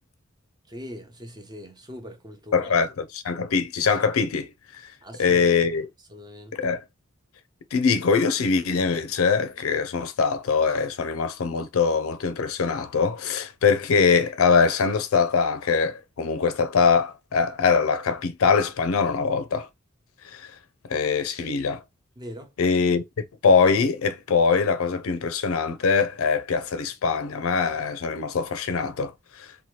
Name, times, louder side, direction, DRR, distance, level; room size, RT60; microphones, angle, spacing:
voice 1, 0.7-2.7 5.0-5.7 6.1-6.7 22.2-22.5, equal, 20° right, 0.6 m, -41 dB
voice 2, 2.5-4.5 5.2-5.9 6.5-6.8 7.7-19.7 20.3-20.5 20.9-21.8 22.6-29.1 29.4-29.5, left 5 dB, 90° left, 0.5 m, -23 dB
2.8 x 2.2 x 3.1 m
head